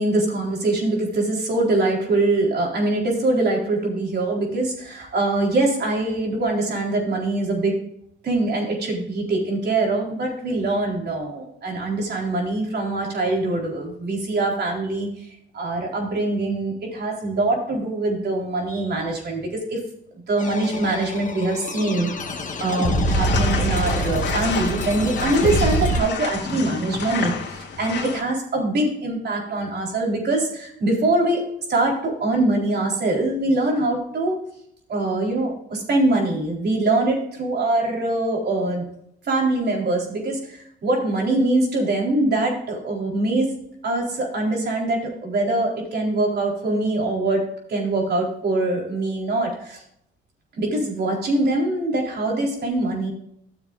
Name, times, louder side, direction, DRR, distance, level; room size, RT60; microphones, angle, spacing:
voice 1, 0.0-7.9 8.2-15.2 15.5-19.8 20.3-34.4 34.9-38.9 39.3-43.6 43.8-49.8 50.6-53.1, right 2 dB, 55° right, -1 dB, 4.1 m, -23 dB
sound 1, 20.4-26.0, equal, 40° left, 1.6 m, -25 dB
sound 2, 23.0-28.2, left 5 dB, 60° left, 2.2 m, -29 dB
14.5 x 7.2 x 2.5 m, 0.72 s
cardioid pair, 90°, 20 cm